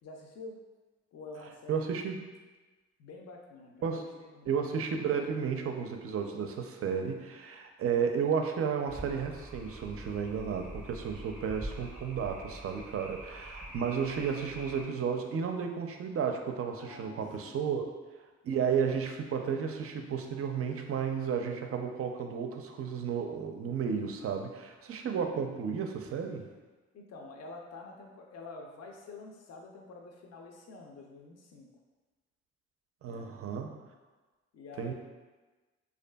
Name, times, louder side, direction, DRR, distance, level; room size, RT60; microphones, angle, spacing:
voice 1, 0.0-0.6 1.1-1.9 3.0-4.5 16.8-17.7 26.9-31.7 33.0-33.3 34.5-34.9, left 3 dB, 55° left, 1 dB, 0.5 m, -48 dB
voice 2, 1.7-2.3 3.8-4.0 4.5-17.8 18.4-26.5 33.0-33.8 34.8-34.9, right 6 dB, 45° right, 4 dB, 0.4 m, -33 dB
sound 1, 8.9-14.9, equal, 5° right, 0.6 m, -45 dB
2.5 x 2.4 x 2.2 m, 1.2 s
supercardioid pair, 50°, 31 cm